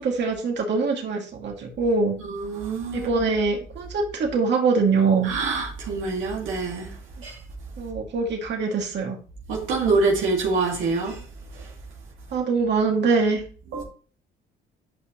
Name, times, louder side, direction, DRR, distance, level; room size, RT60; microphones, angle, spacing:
voice 1, 0.0-2.2 2.9-5.3 7.8-9.2 12.3-13.4, right 4 dB, 60° right, 2.3 m, -23 dB
voice 2, 2.2-3.2 5.2-6.9 7.2-7.4 9.5-11.2 11.5-11.7 13.7-13.8, right 3 dB, 85° right, 2.2 m, -25 dB
10.0 x 5.6 x 3.1 m
cardioid pair, 90°, 20 cm